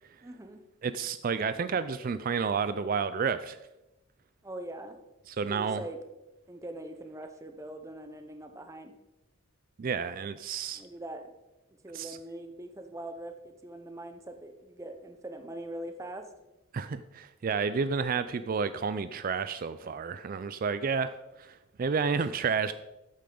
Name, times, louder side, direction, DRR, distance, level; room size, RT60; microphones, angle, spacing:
voice 1, 0.2-0.6 4.4-5.0 5.4-6.0 6.5-8.9 10.8-11.3 11.8-16.3, right 1 dB, 15° right, 6 dB, 0.7 m, -42 dB
voice 2, 0.8-3.6 5.3-5.8 9.8-10.8 11.9-12.2 16.7-22.7, right 5 dB, 40° right, 13 dB, 0.3 m, -31 dB
14.0 x 8.5 x 3.8 m, 0.98 s
head